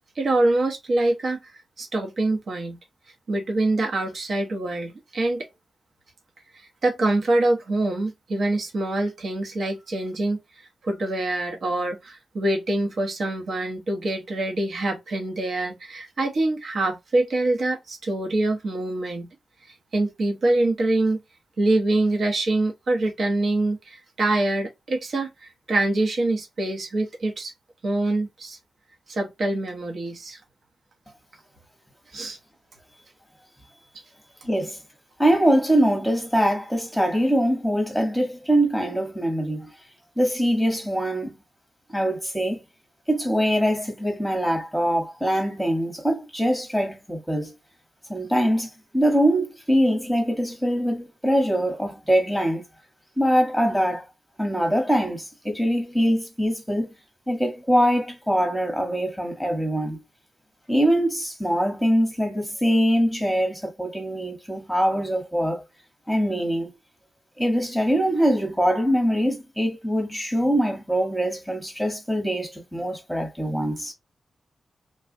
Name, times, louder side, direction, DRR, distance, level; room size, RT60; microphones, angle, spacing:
voice 1, 0.1-1.4 1.8-2.8 3.3-5.5 6.5-19.3 19.9-21.2 21.6-27.5 27.8-28.6 29.1-30.4 32.1-32.4, right 2 dB, 60° right, 0.9 m, -25 dB
voice 2, 34.4-34.8 35.2-39.7 40.2-41.4 41.9-42.6 43.1-47.5 48.1-52.6 53.2-54.1 54.4-56.9 57.3-60.0 60.7-65.6 66.1-66.7 67.4-73.9, equal, 5° right, 1.1 m, -23 dB
3.4 x 2.3 x 2.5 m
wide cardioid pair, 140°, 0 cm